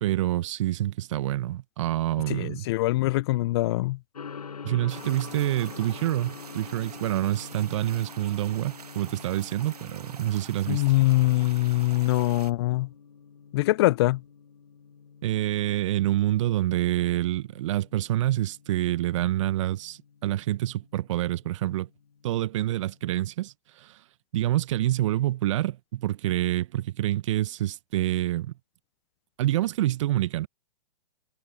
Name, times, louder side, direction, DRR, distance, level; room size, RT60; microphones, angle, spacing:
voice 1, 0.0-2.7 4.6-10.8 15.2-21.9 22.2-24.0 24.3-28.5 29.4-30.5, right 14 dB, 55° right, 1.0 m, -27 dB
voice 2, 2.3-4.0 10.7-12.9 13.5-14.2, left 18 dB, 45° left, 0.5 m, -23 dB
Gong, 4.1-23.1, left 6 dB, 80° left, 7.1 m, -47 dB
sound 1, 4.9-12.5, right 6 dB, 85° right, 1.2 m, -46 dB
hypercardioid pair, 120°, 19 cm